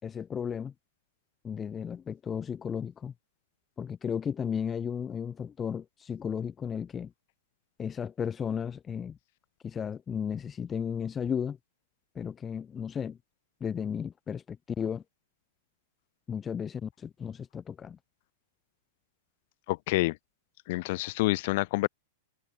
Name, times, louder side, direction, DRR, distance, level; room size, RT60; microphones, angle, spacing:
voice 1, 0.0-0.7 1.4-3.1 3.8-7.1 7.8-9.2 9.6-11.6 12.1-13.2 13.6-15.0 16.3-18.0, left 7 dB, 25° left, 6.2 m, -34 dB
voice 2, 19.7-20.2 20.7-21.9, left 21 dB, 55° left, 2.5 m, -27 dB
hypercardioid pair, 105°, 0 cm